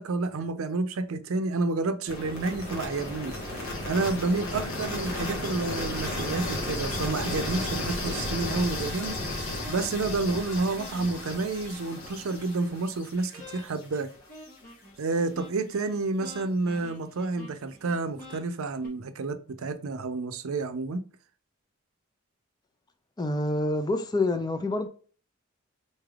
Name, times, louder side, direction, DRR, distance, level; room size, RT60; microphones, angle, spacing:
voice 1, 0.0-9.2 9.7-14.1 15.0-21.0, right 3 dB, 75° right, 0.5 m, -30 dB
sound 1, 2.1-14.0, left 1 dB, 90° left, 1.2 m, -34 dB
sound 2, 2.1-3.3 4.4-12.6 13.3-14.0 14.3-18.9, right 1 dB, 45° left, 1.6 m, -48 dB
voice 2, 23.2-24.9, left 2 dB, 20° left, 0.5 m, -27 dB
4.1 x 3.3 x 2.3 m
head